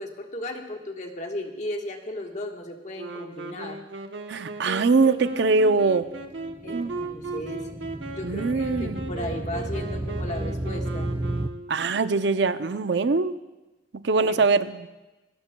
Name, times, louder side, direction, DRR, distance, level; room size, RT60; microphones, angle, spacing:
voice 1, 0.0-3.8 6.6-7.7 8.2-11.1 14.2-14.5, left 1 dB, 40° left, 2 dB, 1.4 m, -35 dB
Wind instrument woodwind instrument, 2.9-12.0, right 2 dB, 90° right, 1.0 m, -37 dB
voice 2, 4.3-6.1 6.7-6.9 8.2-9.0 11.7-13.4 13.9-14.9, right 4 dB, 70° right, 11 dB, 0.5 m, -22 dB
sound 1, 5.6-11.5, right 1 dB, 10° right, 0.3 m, -33 dB
26.5 x 13.0 x 2.3 m, 1.1 s
head